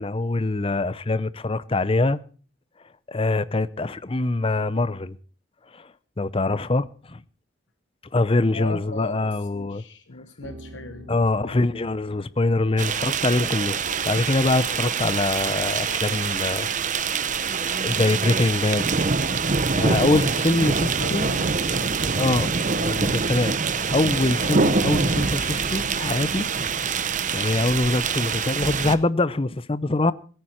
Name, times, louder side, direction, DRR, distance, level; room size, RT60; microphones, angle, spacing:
voice 1, 0.0-2.2 3.1-5.2 5.7-5.9 6.2-7.2 8.1-9.8 11.1-16.7 17.0-17.4 17.8-19.1 19.7-21.3 22.2-26.5 27.3-30.1, left 2 dB, 30° left, 0.6 m, -24 dB
voice 2, 8.5-11.6 21.0-21.9 28.2-28.3, left 2 dB, 60° left, 1.0 m, -37 dB
sound 1, 10.2-13.2 13.8-16.7, right 1 dB, 90° right, 3.8 m, -48 dB
sound 2, 12.8-29.0, right 5 dB, 40° right, 0.8 m, -25 dB
16.5 x 14.0 x 4.4 m
head